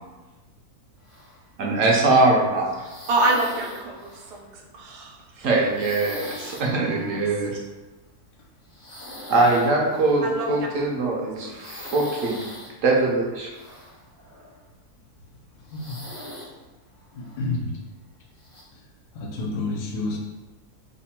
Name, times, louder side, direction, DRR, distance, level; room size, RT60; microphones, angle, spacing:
sound 1, 1.0-1.7 2.0-2.3 2.7-4.5 5.6-6.6 6.9-7.3 8.7-10.2 11.5-12.7 13.5-14.6 15.0-15.1 15.7-16.5 17.0-17.4 18.4-18.6, left 1 dB, 40° left, 0.4 m, -41 dB
voice 1, 1.6-2.9 5.4-7.6 9.3-12.4 12.8-13.5, right 2 dB, 65° right, -2 dB, 0.8 m, -22 dB
voice 2, 3.1-5.3 6.7-7.2 10.2-10.7 11.4-11.6, right 2 dB, 90° right, 0 dB, 1.2 m, -27 dB
voice 3, 17.1-17.8 19.1-20.2, left 2 dB, 85° left, 0 dB, 1.2 m, -29 dB
3.1 x 2.1 x 4.2 m, 1.1 s
omnidirectional pair, 1.7 m